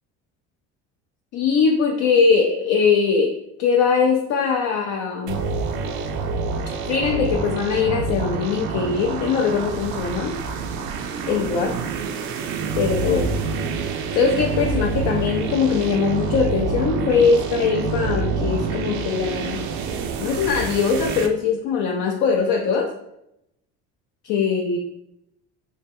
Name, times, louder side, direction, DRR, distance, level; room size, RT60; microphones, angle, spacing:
voice 1, 1.3-5.4 6.9-10.3 11.3-11.8 12.8-13.4 14.1-19.6 20.2-22.9 24.2-24.8, left 5 dB, 60° left, 1 dB, 0.5 m, -21 dB
sound 1, 5.3-21.3, right 4 dB, 65° right, 0.5 m, -27 dB
2.8 x 2.1 x 3.4 m, 0.81 s
supercardioid pair, 80°, 32 cm